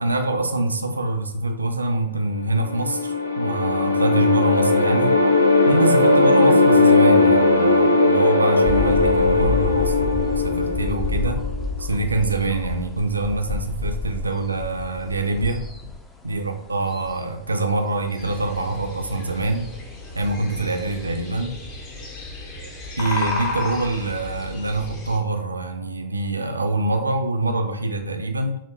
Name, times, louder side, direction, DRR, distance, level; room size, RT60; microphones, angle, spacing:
voice 1, 0.0-5.2 5.7-11.4 11.8-15.6 16.2-19.7 20.1-21.6 23.0-28.6, right 2 dB, 80° right, 5 dB, 0.4 m, -25 dB
sound 1, 2.5-11.7, left 2 dB, 90° left, 0.6 m, -18 dB
sound 2, 8.6-21.1, left 4 dB, 15° left, 0.5 m, -31 dB
sound 3, 18.2-25.2, left 3 dB, 30° left, 0.9 m, -33 dB
5.8 x 2.1 x 3.0 m, 0.76 s
figure-of-eight pair, 100°, 0 cm